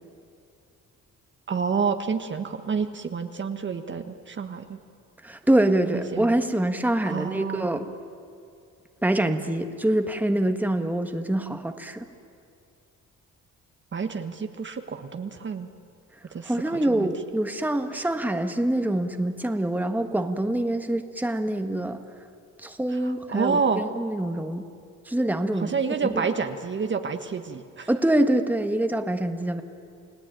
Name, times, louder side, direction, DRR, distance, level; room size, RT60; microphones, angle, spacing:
voice 1, 1.5-4.8 5.9-6.3 7.0-7.8 13.9-15.7 16.3-17.1 17.9-18.0 22.9-23.8 25.6-27.9, right 5 dB, 40° right, 7 dB, 1.4 m, -29 dB
voice 2, 5.2-7.9 9.0-12.0 16.4-22.0 22.6-24.6 25.1-25.7 26.0-26.3 27.9-29.6, right 1 dB, 5° right, 6 dB, 1.6 m, -25 dB
29.5 x 18.0 x 9.2 m, 2.5 s
cardioid pair, 90°, 30 cm